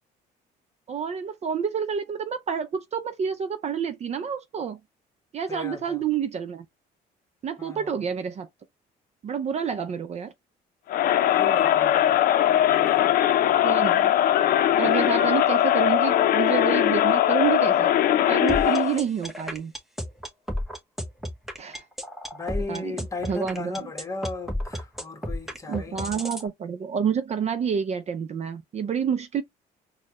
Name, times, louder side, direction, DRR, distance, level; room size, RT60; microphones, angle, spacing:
voice 1, 0.9-4.8 5.3-6.6 7.4-8.5 9.2-10.3 13.6-14.2 14.8-17.9 18.3-19.7 21.6-21.8 22.7-23.0 23.3-23.9 25.7-29.4, right 7 dB, 40° right, 0.5 m, -28 dB
voice 2, 5.5-6.0 7.6-8.0 11.3-12.2 12.7-13.1 22.3-26.2, left 3 dB, 20° left, 1.2 m, -36 dB
Crowd, 10.9-19.0, left 12 dB, 60° left, 0.6 m, -20 dB
sound 1, 18.5-26.5, equal, ahead, 1.0 m, -32 dB
4.3 x 2.2 x 3.0 m
cardioid pair, 110°, 17 cm